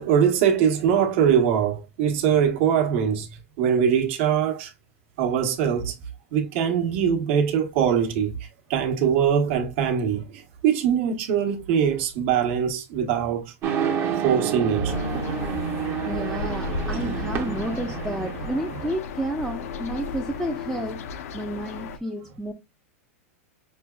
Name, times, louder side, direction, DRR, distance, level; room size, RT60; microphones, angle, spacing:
voice 1, 0.0-3.3 3.6-4.7 5.2-5.9 6.3-13.5 14.2-14.9 15.4-15.5, right 8 dB, 55° right, 1.2 m, -22 dB
sound 1, 13.6-18.9, right 7 dB, 30° right, 0.9 m, -29 dB
sound 2, 14.9-22.0, left 4 dB, 75° left, 0.7 m, -34 dB
voice 2, 16.1-21.0 21.3-22.5, right 1 dB, 5° right, 0.6 m, -31 dB
6.2 x 2.3 x 2.2 m
supercardioid pair, 140°, 8 cm